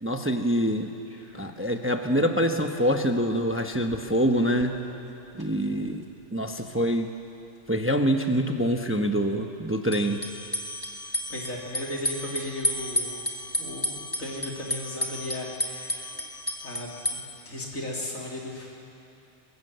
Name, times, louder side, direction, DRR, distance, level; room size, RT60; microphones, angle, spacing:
voice 1, 0.0-0.9 1.3-4.8 5.4-6.0 6.3-7.1 7.7-10.2, equal, 10° right, 5 dB, 0.9 m, -25 dB
voice 2, 1.2-1.5 11.3-13.3 13.6-16.1 16.6-17.2 17.5-18.7, left 1 dB, 80° left, -2 dB, 3.9 m, -36 dB
sound 1, 1.3-1.4 1.8-1.9 2.1-2.2 2.8-3.2 3.5-5.5 5.8-5.9 9.9-17.2, left 1 dB, 15° left, 1.9 m, -33 dB
23.0 x 21.5 x 8.0 m, 2.7 s
omnidirectional pair, 1.4 m